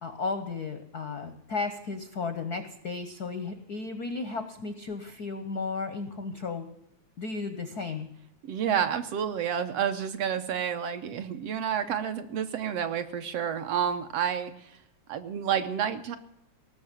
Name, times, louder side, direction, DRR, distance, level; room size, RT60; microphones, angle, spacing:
voice 1, 0.0-6.7 7.2-8.1, left 4 dB, 75° left, 9 dB, 0.8 m, -34 dB
voice 2, 8.4-14.7 15.1-16.2, right 8 dB, 70° right, 8 dB, 1.7 m, -29 dB
18.0 x 6.9 x 9.9 m, 0.77 s
omnidirectional pair, 3.3 m